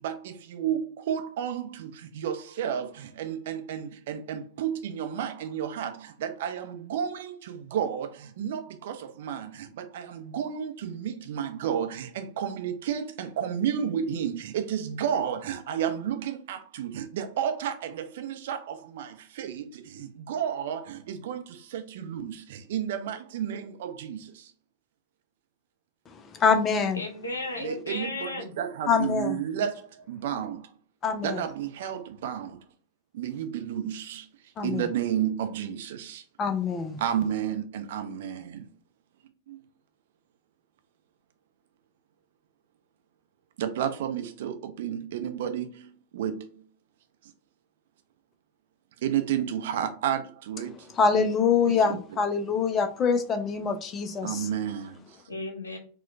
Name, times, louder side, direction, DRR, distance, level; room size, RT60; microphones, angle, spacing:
voice 1, 0.0-24.5 27.6-30.8 31.2-32.6 33.1-34.3 34.6-36.2 37.0-38.7 39.5-39.6 43.6-46.6 47.2-47.3 49.0-50.9 51.7-52.0 54.2-55.3, right 9 dB, 55° right, 0.5 m, -32 dB
voice 2, 26.3-27.0 28.9-29.4 31.0-31.4 34.6-34.9 36.4-37.0 51.0-54.5, left 5 dB, 25° left, 0.5 m, -25 dB
voice 3, 26.9-28.5 55.3-55.8, left 2 dB, 75° left, 0.8 m, -34 dB
4.3 x 2.2 x 2.5 m
figure-of-eight pair, 90°, 0 cm